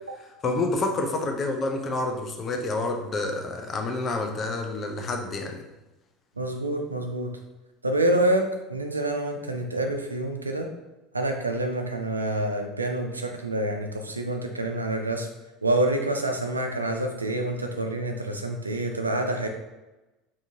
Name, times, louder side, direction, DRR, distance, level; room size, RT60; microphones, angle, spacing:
voice 1, 0.2-5.6, left 2 dB, 30° left, 3 dB, 0.5 m, -28 dB
voice 2, 6.4-7.3 7.8-8.4 8.7-10.7 11.1-15.3 15.6-19.5, right 1 dB, 85° right, 4 dB, 0.3 m, -27 dB
3.6 x 2.7 x 2.7 m, 1.1 s
figure-of-eight pair, 70°, 0 cm